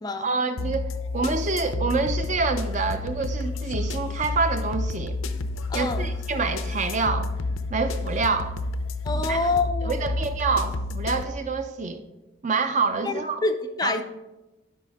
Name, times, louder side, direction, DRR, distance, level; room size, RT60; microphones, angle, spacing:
voice 1, 0.1-5.2 5.7-7.3 7.7-8.6 9.1-9.5 9.8-12.0 12.4-13.4 13.8-14.0, right 4 dB, 35° right, 8 dB, 0.5 m, -27 dB
sound 1, 0.6-11.2, left 2 dB, 85° left, 0.6 m, -30 dB
voice 2, 5.7-6.1 9.0-10.0 13.0-14.0, left 3 dB, 20° left, 7 dB, 0.4 m, -27 dB
11.5 x 5.2 x 3.6 m, 1.1 s
head